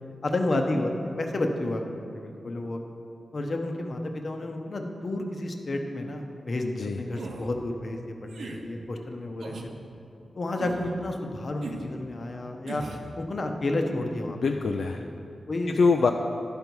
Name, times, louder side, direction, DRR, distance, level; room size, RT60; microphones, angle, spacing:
voice 1, 0.2-2.8 3.3-9.5 10.4-12.8 13.2-14.4 15.0-15.8, left 2 dB, 45° left, 4 dB, 0.7 m, -31 dB
voice 2, 6.6-7.0 14.3-15.0 15.8-16.1, left 4 dB, 70° left, 3 dB, 0.3 m, -24 dB
sound 1, 7.1-7.5 8.3-8.6 9.4-9.7 10.6-10.9 11.6-11.9 12.7-13.1, right 3 dB, 85° right, 0.7 m, -38 dB
11.5 x 5.3 x 4.6 m, 2.6 s
wide cardioid pair, 130°, 0 cm